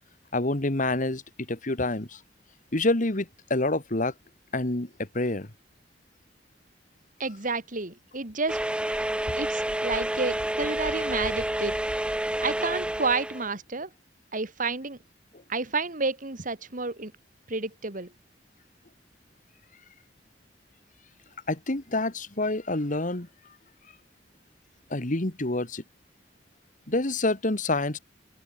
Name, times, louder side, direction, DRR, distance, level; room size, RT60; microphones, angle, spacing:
voice 1, 0.3-1.2 1.5-2.2 2.7-4.1 4.5-5.5 21.5-23.3 24.9-25.8 26.9-28.0, left 2 dB, 45° left, 2.0 m, -27 dB
voice 2, 7.2-8.6 9.4-11.8 12.4-13.9 14.3-15.0 15.5-17.1 17.5-18.1, right 4 dB, 50° right, 2.3 m, -30 dB
sound 1, 8.5-13.5, right 1 dB, 5° right, 0.8 m, -29 dB
open air
head